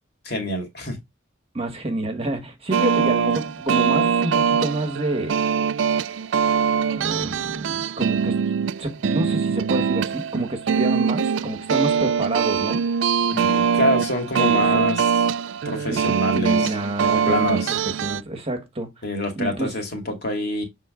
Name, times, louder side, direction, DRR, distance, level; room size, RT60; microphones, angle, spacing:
voice 1, 0.2-1.0 13.3-15.0 15.6-16.7 17.3-17.8 19.0-20.6, left 1 dB, 50° left, 2.3 m, -26 dB
voice 2, 1.5-5.4 7.0-8.4 8.8-12.8 14.3-14.8 15.9-18.9 19.3-19.7, right 1 dB, 30° right, 1.6 m, -28 dB
sound 1, 2.7-18.2, right 6 dB, 65° right, 0.4 m, -22 dB
7.6 x 3.8 x 3.8 m
head